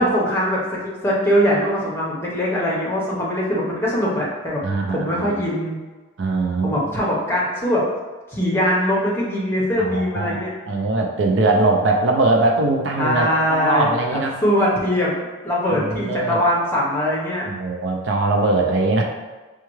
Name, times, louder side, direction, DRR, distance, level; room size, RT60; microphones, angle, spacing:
voice 1, 0.0-4.6 4.9-5.8 6.6-7.8 8.3-10.5 13.0-13.9 14.4-15.1 15.4-17.5, equal, 10° left, -5 dB, 0.8 m, -21 dB
voice 2, 4.6-5.4 6.2-6.7 9.8-14.4 15.7-16.4 17.5-19.0, right 2 dB, 60° right, 1 dB, 0.4 m, -21 dB
5.6 x 2.3 x 3.1 m, 1.3 s
head